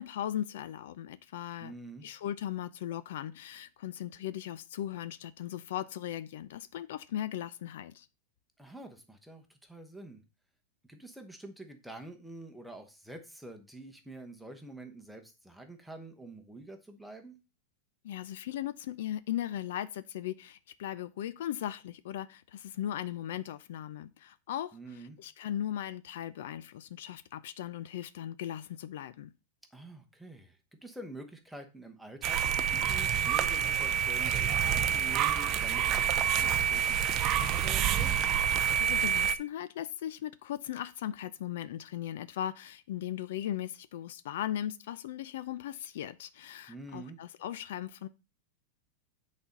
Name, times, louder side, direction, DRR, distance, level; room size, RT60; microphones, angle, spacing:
voice 1, 0.0-1.7 2.0-8.1 18.0-29.3 38.8-48.1, left 11 dB, 65° left, 0.5 m, -38 dB
voice 2, 1.6-2.0 8.6-10.2 10.9-17.3 24.7-25.2 29.7-30.6 30.8-38.1 46.7-47.2, right 2 dB, ahead, 1.0 m, -47 dB
sound 1, 32.2-39.4, right 9 dB, 30° right, 0.5 m, -28 dB
8.7 x 4.2 x 5.2 m
supercardioid pair, 170°, 0 cm